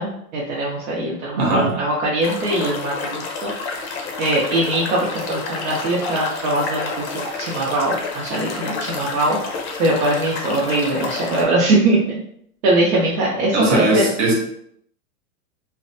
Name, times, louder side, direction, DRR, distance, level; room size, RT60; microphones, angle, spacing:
voice 1, 0.0-3.5 4.2-12.2 12.6-14.1, right 2 dB, 65° right, -5 dB, 0.8 m, -21 dB
voice 2, 1.4-1.8 13.5-14.3, right 2 dB, 25° right, -2 dB, 0.5 m, -19 dB
sound 1, 2.2-11.4, left 4 dB, 45° left, 0.5 m, -29 dB
2.5 x 2.1 x 2.6 m, 0.69 s
supercardioid pair, 155°, 45 cm